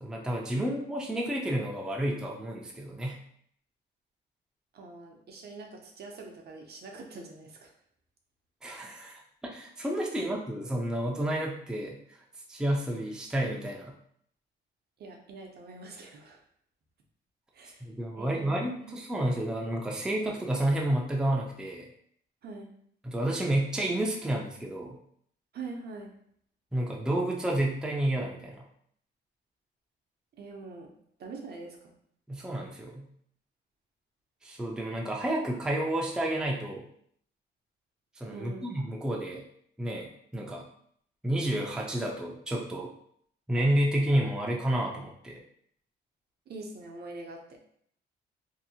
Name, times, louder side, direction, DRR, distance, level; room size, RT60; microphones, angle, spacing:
voice 1, 0.0-3.2 8.6-12.2 12.5-14.0 17.8-21.9 23.0-25.0 26.7-28.6 32.3-33.1 34.4-36.8 38.2-39.4 39.8-40.6 41.2-42.9 43.5-45.4, right 1 dB, 5° right, -1 dB, 0.4 m, -30 dB
voice 2, 4.7-7.7 10.2-10.3 15.0-16.4 17.5-17.9 18.2-18.9 22.4-22.7 25.5-26.1 30.4-30.9 31.2-31.9 38.3-38.7 46.5-47.4, right 3 dB, 55° right, 1 dB, 0.6 m, -44 dB
2.7 x 2.0 x 2.7 m, 0.66 s
cardioid pair, 90°, 20 cm